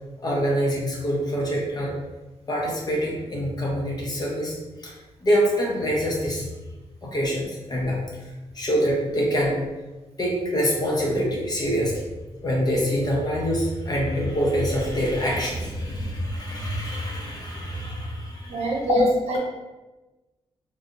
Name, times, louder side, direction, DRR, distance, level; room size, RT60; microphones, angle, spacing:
voice 1, 0.2-1.9 2.5-4.9 5.2-6.5 7.0-9.6 10.2-12.1 12.4-18.7 18.9-19.0, equal, 40° left, -3 dB, 0.7 m, -25 dB
voice 2, 18.5-19.4, equal, 80° right, -1 dB, 0.7 m, -23 dB
3.2 x 2.6 x 2.5 m, 1.1 s
wide cardioid pair, 145°, 11 cm